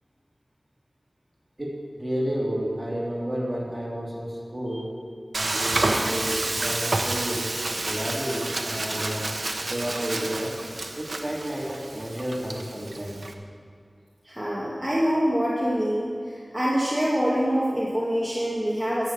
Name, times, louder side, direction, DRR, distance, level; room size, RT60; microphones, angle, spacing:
voice 1, 1.6-4.9 5.3-7.5 7.8-9.3 9.6-10.6 10.9-13.2, equal, 30° right, -4 dB, 3.2 m, -31 dB
Frying (food), 5.3-13.3, right 2 dB, 70° right, 0.9 m, -29 dB
voice 2, 14.3-19.1, equal, 10° right, -6 dB, 1.9 m, -25 dB
12.0 x 7.4 x 6.9 m, 2.2 s
wide cardioid pair, 50°, 0 cm